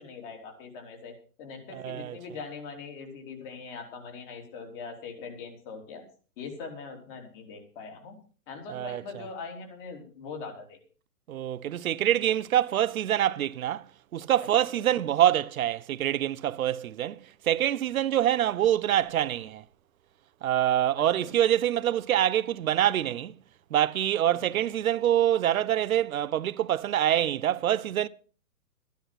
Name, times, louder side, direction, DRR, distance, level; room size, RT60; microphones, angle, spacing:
voice 1, 0.0-6.0 6.4-8.2 8.5-10.8 14.6-14.7 21.2-21.3, left 5 dB, 30° left, 3.6 m, -42 dB
voice 2, 1.7-2.2 8.7-9.2 11.3-13.8 14.1-19.6 20.4-23.3 23.7-28.1, right 11 dB, 60° right, 0.8 m, -25 dB
13.5 x 10.5 x 6.0 m
hypercardioid pair, 155°, 48 cm